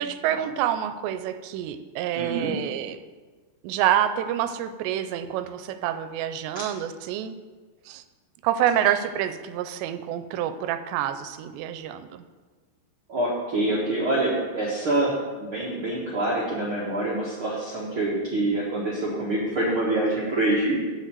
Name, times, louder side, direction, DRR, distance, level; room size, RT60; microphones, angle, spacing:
voice 1, 0.0-3.0 3.6-7.4 7.9-8.0 8.4-12.1, right 11 dB, 85° right, 11 dB, 2.8 m, -27 dB
voice 2, 2.1-2.5 13.1-20.8, right 2 dB, 65° right, -6 dB, 1.3 m, -26 dB
7.9 x 6.6 x 7.9 m, 1.4 s
omnidirectional pair, 5.0 m